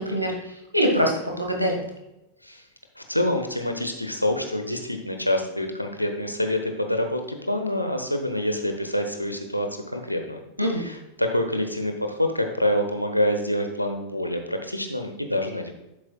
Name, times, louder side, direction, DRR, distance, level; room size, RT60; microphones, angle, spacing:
voice 1, 0.0-1.8 10.6-10.8, equal, 90° right, 1 dB, 1.7 m, -24 dB
voice 2, 3.0-10.4 10.7-15.7, left 1 dB, 90° left, 5 dB, 1.0 m, -26 dB
11.0 x 7.9 x 2.3 m, 0.92 s
figure-of-eight pair, 90°, 0 cm